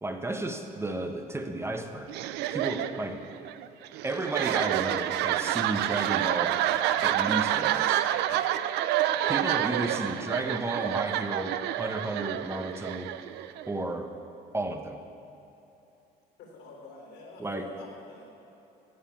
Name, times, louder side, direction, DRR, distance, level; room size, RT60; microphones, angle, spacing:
voice 1, 0.0-2.1 2.5-3.2 4.0-6.6 7.0-8.0 9.3-13.1 13.7-14.1 14.5-15.0 17.4-17.7, right 2 dB, 15° right, 6 dB, 0.8 m, -33 dB
sound 1, 2.1-13.8, right 12 dB, 85° right, 0.5 m, -28 dB
voice 2, 16.4-18.2, left 3 dB, 85° left, 0 dB, 3.4 m, -47 dB
14.5 x 5.5 x 8.4 m, 2.9 s
cardioid pair, 110°, 17 cm